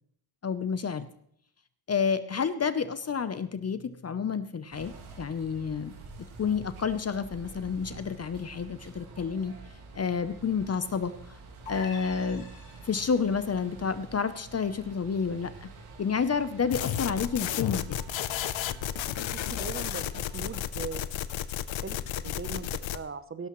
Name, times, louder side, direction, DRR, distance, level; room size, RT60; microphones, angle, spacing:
voice 1, 0.4-1.1 1.9-5.9 6.4-9.5 9.9-11.1 11.7-12.5 12.8-15.7 16.0-18.0, left 6 dB, 30° left, 12 dB, 0.7 m, -29 dB
sound 1, 4.7-20.6, right 3 dB, 80° right, 4.0 m, -48 dB
sound 2, 11.7-13.3, left 3 dB, 80° left, 5.2 m, -45 dB
sound 3, 16.7-23.0, left 11 dB, 65° left, 0.8 m, -32 dB
voice 2, 19.5-21.1 21.8-23.5, right 5 dB, 25° right, 12 dB, 0.8 m, -39 dB
17.0 x 13.0 x 3.1 m, 0.69 s
cardioid pair, 115°, 49 cm